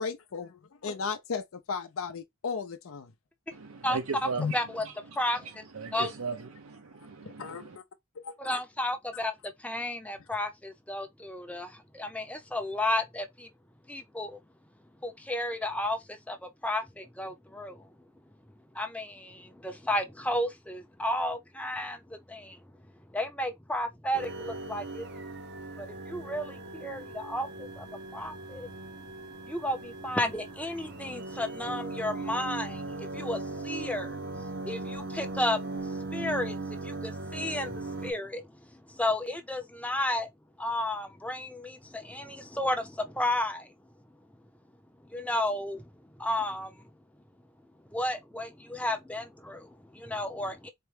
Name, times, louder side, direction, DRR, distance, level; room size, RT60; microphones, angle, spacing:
voice 1, 0.0-3.1 4.4-4.5 7.4-7.6 8.5-8.6, left 5 dB, 70° left, 0.5 m, -34 dB
voice 2, 3.5-7.8, right 4 dB, 90° right, 0.7 m, -38 dB
voice 3, 4.5-4.8 5.2-5.5 5.9-6.1 8.4-13.5 13.9-14.4 15.0-17.9 18.7-22.6 23.1-25.1 25.8-28.7 29.4-40.3 40.6-43.7 45.0-45.9 46.2-46.9 47.9-50.7, left 1 dB, 5° left, 0.6 m, -33 dB
sound 1, 24.1-38.1, right 2 dB, 55° right, 0.6 m, -39 dB
4.4 x 2.1 x 3.2 m
head